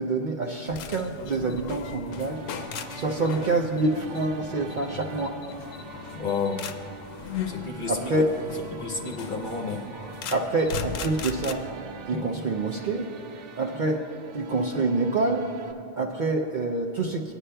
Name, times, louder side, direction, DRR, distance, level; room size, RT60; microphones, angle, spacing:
voice 1, 0.0-2.4 2.9-5.4 7.9-8.3 10.3-11.7 12.1-13.1 13.6-14.0 14.3-17.3, right 2 dB, 55° right, 1 dB, 0.5 m, -26 dB
sound 1, 0.6-11.5, left 7 dB, 85° left, 1.0 m, -38 dB
sound 2, 2.0-15.7, right 6 dB, 75° right, 0.9 m, -44 dB
voice 2, 6.1-6.7 7.5-8.3 8.7-9.9 12.1-12.4, left 4 dB, 50° left, 2 dB, 0.7 m, -31 dB
18.5 x 9.8 x 2.2 m, 2.6 s
omnidirectional pair, 1.3 m